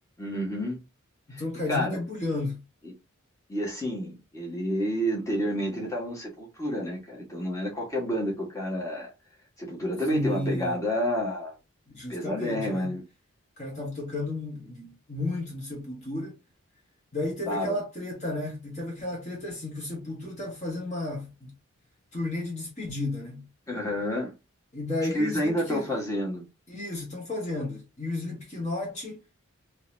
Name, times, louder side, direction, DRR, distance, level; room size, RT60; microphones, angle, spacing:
voice 1, 0.2-0.8 1.3-1.4 1.7-2.0 2.8-2.9 3.5-9.1 9.6-11.6 12.1-13.0 17.5-17.8 23.7-24.3 25.1-26.4, equal, 15° left, 1.3 m, -29 dB
voice 2, 1.3-2.6 10.1-10.8 11.9-12.9 13.6-16.4 17.1-21.5 22.1-23.5 24.7-25.9 26.7-29.2, left 2 dB, 30° left, 1.2 m, -33 dB
3.9 x 2.9 x 2.6 m
head